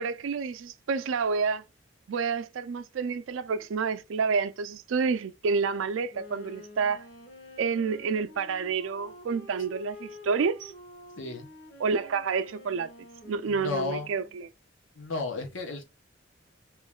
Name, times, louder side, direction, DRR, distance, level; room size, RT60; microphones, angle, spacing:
voice 1, 0.0-1.6 2.1-7.1 7.6-10.7 11.8-12.9 13.3-14.5, right 5 dB, 90° right, 0.4 m, -29 dB
Wind instrument woodwind instrument, 6.1-14.4, left 1 dB, 70° left, 1.5 m, -48 dB
voice 2, 11.2-11.5 13.5-14.1 15.0-15.8, left 3 dB, 90° left, 1.1 m, -33 dB
3.1 x 3.1 x 3.6 m
head